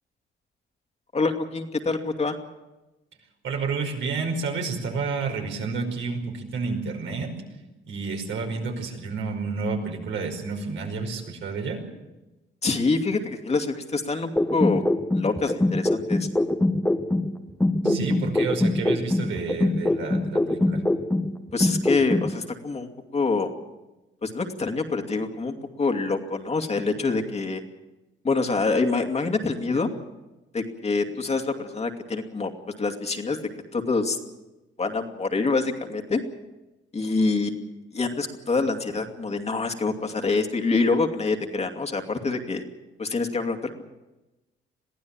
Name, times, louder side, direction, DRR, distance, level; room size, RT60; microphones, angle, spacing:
voice 1, 1.1-2.4 12.6-14.8 15.1-16.3 21.5-23.5 24.2-27.6 28.2-29.9 30.5-32.5 32.8-33.4 33.7-34.2 34.8-36.2 36.9-37.5 37.9-42.6 43.0-43.8, left 3 dB, 35° left, 4 dB, 2.5 m, -26 dB
voice 2, 3.4-7.3 7.9-11.8 17.8-20.8, right 4 dB, 75° right, 2 dB, 5.4 m, -30 dB
sound 1, 14.4-17.3 17.6-21.3 21.6-22.3, left 2 dB, 10° left, 1.4 m, -23 dB
22.5 x 15.0 x 8.8 m, 1.0 s
cardioid pair, 90°, 20 cm